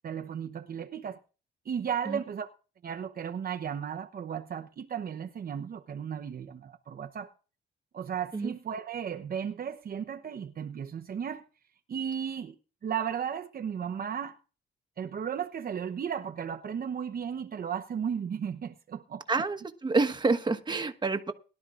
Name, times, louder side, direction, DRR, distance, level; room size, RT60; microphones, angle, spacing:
voice 1, 0.0-1.2 1.6-2.5 2.8-7.3 7.9-11.5 11.9-12.5 12.8-14.4 15.0-19.2, right 8 dB, 45° right, 0.9 m, -35 dB
voice 2, 19.3-21.3, right 3 dB, 20° right, 1.3 m, -28 dB
21.5 x 12.0 x 2.5 m
cardioid pair, 90°, 20 cm